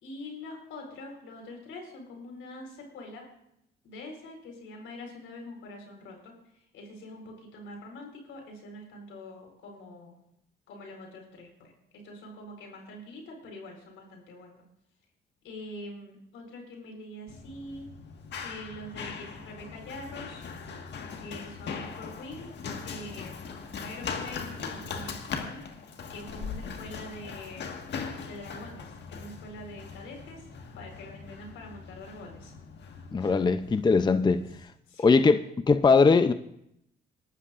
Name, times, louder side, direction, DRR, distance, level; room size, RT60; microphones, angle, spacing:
voice 1, 0.0-3.2 3.8-6.3 6.7-10.2 10.7-14.6 15.4-17.9 18.4-20.5 21.2-22.5 22.8-25.6 26.1-27.9 28.3-30.5 30.7-32.5 34.9-35.3, left 1 dB, 85° left, 4.3 m, -44 dB
Run, 17.3-34.6, left 5 dB, 60° left, 1.6 m, -40 dB
voice 2, 33.1-34.4 35.0-35.4 35.7-36.3, left 4 dB, 20° left, 0.5 m, -20 dB
27.5 x 12.5 x 2.5 m
cardioid pair, 90°, 20 cm